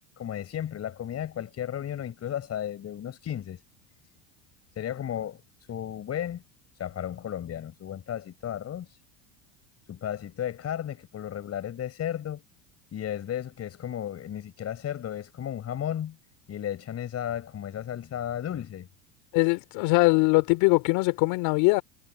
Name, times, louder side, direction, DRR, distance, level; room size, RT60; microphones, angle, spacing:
voice 1, 0.2-3.6 4.8-5.4 5.7-6.4 6.8-9.0 9.9-12.4 12.9-16.2 16.5-18.9, left 10 dB, 40° left, 6.0 m, -34 dB
voice 2, 19.3-21.8, left 26 dB, 65° left, 3.3 m, -22 dB
hypercardioid pair, 95°, 39 cm